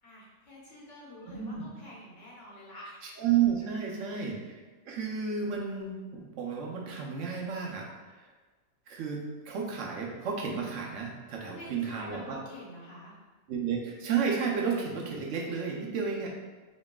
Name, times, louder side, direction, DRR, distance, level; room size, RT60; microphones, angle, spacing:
voice 1, 0.0-3.0 4.0-4.3 11.4-13.1, left 1 dB, 85° left, -6 dB, 1.5 m, -48 dB
voice 2, 1.3-1.7 3.0-8.3 8.9-12.4 13.5-16.3, right 6 dB, 80° right, -1 dB, 1.0 m, -32 dB
5.1 x 3.0 x 2.3 m, 1.3 s
omnidirectional pair, 1.2 m